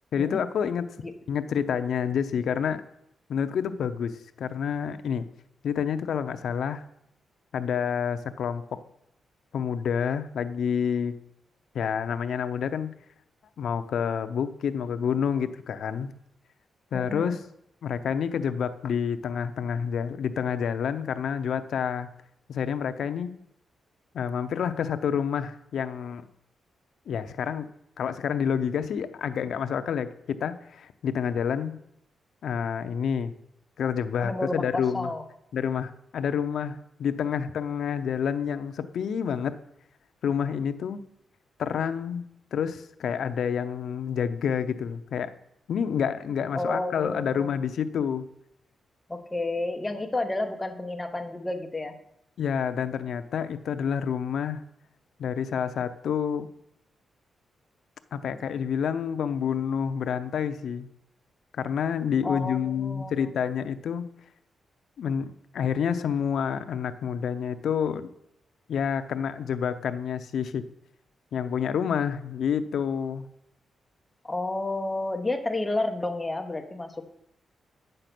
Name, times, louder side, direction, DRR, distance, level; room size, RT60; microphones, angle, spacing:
voice 1, 0.1-0.8 1.3-2.8 3.3-5.3 5.6-6.8 7.5-8.8 9.5-11.1 11.7-12.9 13.6-16.1 16.9-17.4 17.8-22.1 22.5-23.3 24.1-26.2 27.1-27.7 28.0-31.8 32.4-33.3 33.8-35.1 35.5-39.6 40.2-41.0 41.6-42.3 42.5-45.3 45.7-48.3 52.4-54.6 55.2-56.5 58.1-60.9 61.5-64.1 65.0-68.1 68.7-70.6 71.3-73.3, left 7 dB, 65° left, 10 dB, 0.6 m, -28 dB
voice 2, 16.9-17.4 34.2-35.2 46.5-47.5 49.1-51.9 62.2-63.3 74.2-77.0, left 2 dB, 10° left, 5 dB, 0.8 m, -31 dB
9.1 x 6.6 x 5.9 m, 0.76 s
wide cardioid pair, 175°, 0 cm